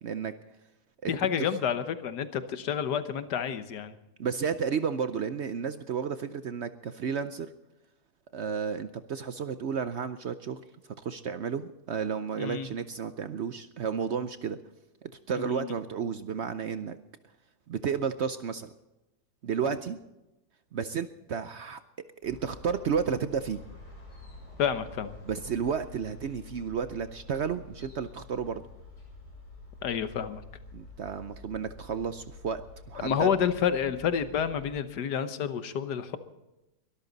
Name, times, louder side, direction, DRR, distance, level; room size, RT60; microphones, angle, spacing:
voice 1, 0.0-0.3 1.0-1.1 1.4-1.5 4.2-7.5 8.3-10.6 11.0-14.6 15.0-17.0 17.7-18.7 19.4-20.0 20.7-21.8 22.2-23.6 25.3-28.6 30.7-32.6 32.9-33.3, right 6 dB, 60° right, 11 dB, 0.7 m, -32 dB
voice 2, 1.1-3.9 12.4-12.7 15.4-15.7 19.7-19.8 24.6-25.2 29.8-30.4 33.0-36.2, left 8 dB, 90° left, 11 dB, 1.6 m, -29 dB
sound 1, 22.2-34.8, left 3 dB, 45° left, 7.4 m, -48 dB
23.0 x 13.0 x 4.0 m, 0.98 s
omnidirectional pair, 1.7 m